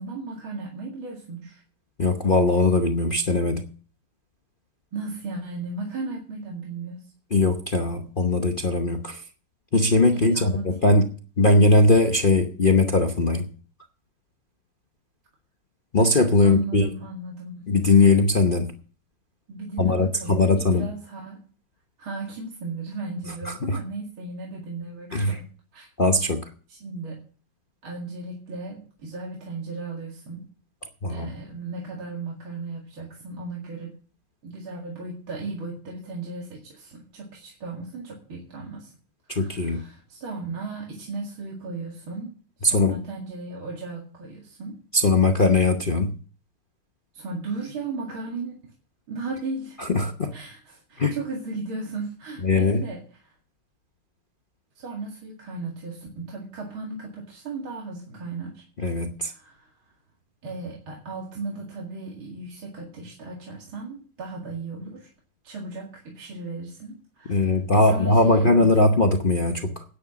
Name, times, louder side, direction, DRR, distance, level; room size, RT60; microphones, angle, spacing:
voice 1, 0.0-1.6 4.9-7.1 10.1-11.0 16.4-17.7 19.5-21.4 22.0-25.5 25.7-25.9 26.7-27.2 27.8-30.5 31.1-33.9 34.4-38.9 39.3-42.3 42.6-44.8 47.1-48.6 49.1-49.8 50.3-53.3 54.8-58.6 59.2-59.7 60.4-65.1 65.4-68.9, right 3 dB, 70° right, -2 dB, 3.0 m, -36 dB
voice 2, 2.0-3.7 7.3-9.2 9.7-13.5 15.9-16.9 17.7-18.7 19.8-20.9 23.4-23.8 25.1-25.4 26.0-26.5 31.0-31.3 39.3-39.8 42.6-43.0 44.9-46.1 49.8-50.3 51.0-51.2 52.4-52.8 58.8-59.3 67.3-69.8, left 2 dB, 60° left, 4 dB, 0.5 m, -20 dB
10.0 x 9.6 x 6.2 m, 0.41 s
omnidirectional pair, 2.4 m